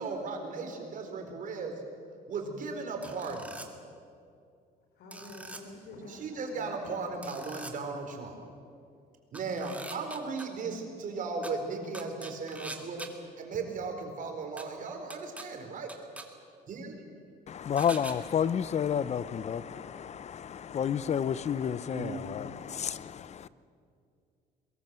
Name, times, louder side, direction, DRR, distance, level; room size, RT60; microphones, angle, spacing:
voice 1, 0.0-1.8 2.3-3.6 6.1-8.4 9.3-13.1 13.4-16.0 16.7-17.0 21.9-22.2, right 4 dB, 50° right, 4 dB, 4.5 m, -36 dB
sound 1, 3.0-3.7 5.1-5.6 7.2-7.7 9.3-10.5 11.4-11.5 11.9-13.1 14.6-14.7 15.1-15.5 15.9-16.3 17.8-18.1, right 2 dB, 10° right, 2.4 m, -43 dB
voice 2, 4.9-7.1, left 1 dB, 75° left, 0 dB, 4.6 m, -48 dB
voice 3, 17.5-23.5, left 8 dB, 40° left, 17 dB, 0.8 m, -31 dB
23.0 x 22.0 x 7.6 m, 2.4 s
cardioid pair, 110°, 17 cm